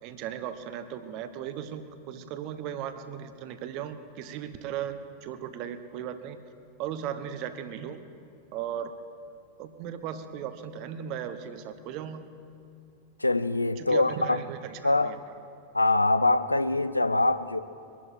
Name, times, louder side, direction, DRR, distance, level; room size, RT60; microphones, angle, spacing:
voice 1, 0.0-6.4 6.8-8.0 8.5-8.9 9.6-12.3 13.8-15.4, right 9 dB, 40° right, 1.1 m, -37 dB
voice 2, 13.2-14.4 14.8-15.1 15.7-17.6, left 2 dB, 85° left, 0.6 m, -24 dB
23.0 x 11.5 x 4.7 m
figure-of-eight pair, 90°, 0 cm